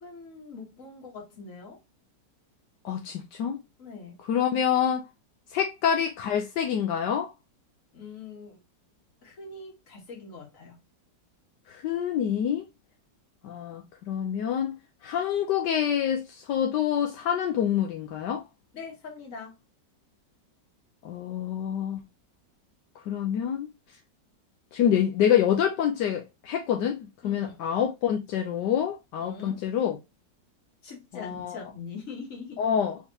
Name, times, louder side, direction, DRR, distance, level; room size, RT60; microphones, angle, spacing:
voice 1, 0.0-1.8 3.8-4.2 7.9-8.6 9.2-10.8 18.7-19.6 27.2-27.6 29.2-29.6 30.8-32.6, left 4 dB, 50° left, 1.8 m, -42 dB
voice 2, 2.8-3.6 4.3-5.0 5.5-7.3 11.7-12.6 13.4-14.7 15.0-18.4 21.0-22.0 23.1-23.7 24.7-30.0 31.1-31.6 32.6-33.0, left 9 dB, 80° left, 1.3 m, -26 dB
4.5 x 3.5 x 2.8 m
omnidirectional pair, 1.9 m